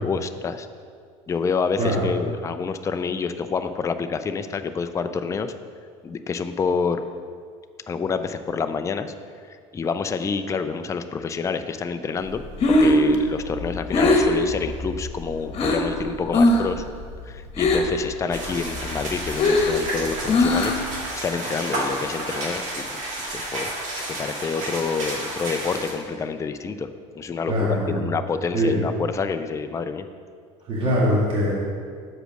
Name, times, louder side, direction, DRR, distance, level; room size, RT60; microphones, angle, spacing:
voice 1, 0.0-0.7 1.3-5.5 6.0-7.0 7.9-9.1 9.5-16.8 17.3-20.8 21.2-23.7 24.2-26.9 27.2-30.1, left 5 dB, 20° left, 9 dB, 0.4 m, -28 dB
Breathing, 12.3-15.9 16.3-16.8 17.0-18.0 18.4-21.0, left 2 dB, 40° left, 1.3 m, -20 dB
sound 1, 18.3-25.9, right 1 dB, 50° right, 2.0 m, -31 dB
voice 2, 27.5-28.0 28.5-28.8 30.6-31.5, equal, 35° right, -6 dB, 1.8 m, -22 dB
6.5 x 5.1 x 6.3 m, 2.1 s
supercardioid pair, 90°, 16 cm